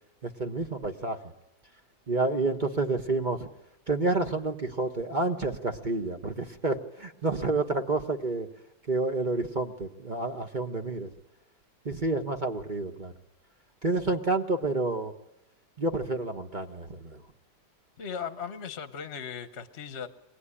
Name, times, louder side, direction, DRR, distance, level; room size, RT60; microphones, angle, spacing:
voice 1, 0.2-1.2 2.1-3.4 3.9-8.5 8.9-11.1 11.8-13.1 13.8-15.1 15.8-17.2, right 2 dB, 30° right, 6 dB, 1.1 m, -29 dB
voice 2, 18.0-20.1, left 7 dB, 40° left, 10 dB, 1.3 m, -37 dB
24.0 x 18.0 x 9.9 m, 0.89 s
omnidirectional pair, 2.0 m